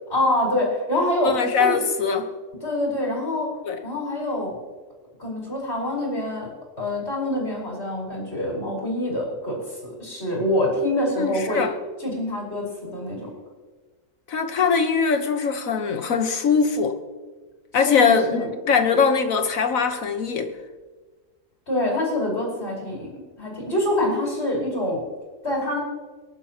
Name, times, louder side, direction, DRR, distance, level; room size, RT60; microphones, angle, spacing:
voice 1, 0.1-1.8 2.6-3.5 3.8-4.6 5.2-6.5 6.8-11.7 12.0-13.3 17.7-18.5 21.7-25.0 25.4-25.8, left 1 dB, 45° left, 5.3 m, -25 dB
voice 2, 1.2-2.2 3.7-3.8 11.2-11.7 14.3-16.9 17.7-18.4 18.7-20.5, left 5 dB, 60° left, 1.6 m, -21 dB
23.5 x 11.5 x 3.0 m
omnidirectional pair, 1.6 m